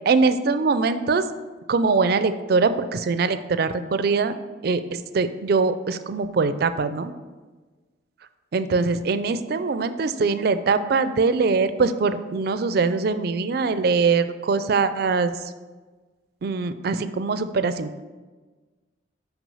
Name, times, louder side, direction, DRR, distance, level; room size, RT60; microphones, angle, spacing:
voice 1, 0.1-1.2 1.7-4.3 4.6-7.1 8.5-15.5 16.4-18.0, right 4 dB, 55° right, 11 dB, 0.4 m, -22 dB
6.0 x 5.1 x 5.5 m, 1.3 s
head